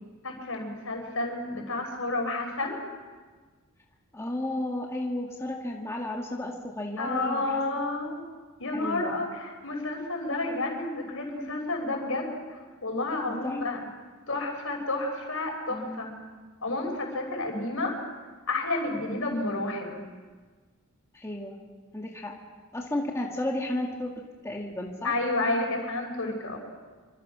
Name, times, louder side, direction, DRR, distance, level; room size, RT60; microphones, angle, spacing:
voice 1, 0.2-2.8 7.0-8.2 8.6-13.8 14.3-16.1 16.6-18.0 18.5-20.0 25.0-26.6, left 2 dB, 70° left, 2 dB, 5.8 m, -30 dB
voice 2, 4.1-7.8 8.7-9.1 13.4-13.6 13.8-13.9 15.7-16.2 21.1-21.6 21.9-22.3 22.7-24.1 24.4-25.1, left 1 dB, 15° left, -1 dB, 2.0 m, -33 dB
26.5 x 25.5 x 6.2 m, 1.4 s
head